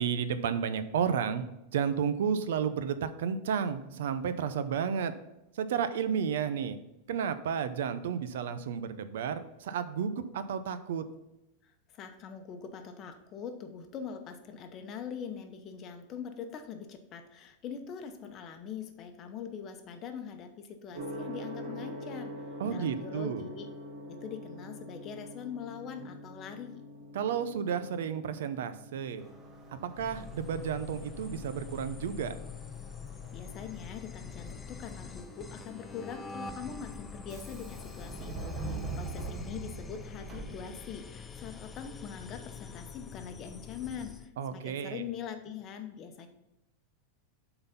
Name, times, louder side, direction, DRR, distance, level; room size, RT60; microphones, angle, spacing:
voice 1, 0.0-5.1 5.6-6.8 7.1-11.1 22.6-23.5 27.1-29.2 30.0-32.4 44.4-45.0, right 7 dB, 80° right, 12 dB, 0.6 m, -32 dB
voice 2, 11.9-22.3 22.7-23.7 24.0-26.8 33.3-46.3, left 7 dB, 30° left, 6 dB, 0.8 m, -43 dB
Gong, 20.9-38.8, equal, 65° right, 1.7 m, -47 dB
Subway metro underground, 29.2-41.1, right 3 dB, 25° right, 1.2 m, -45 dB
sound 1, 29.9-44.3, left 5 dB, 15° left, 0.4 m, -45 dB
7.8 x 4.0 x 5.7 m, 0.92 s
supercardioid pair, 155°, 0 cm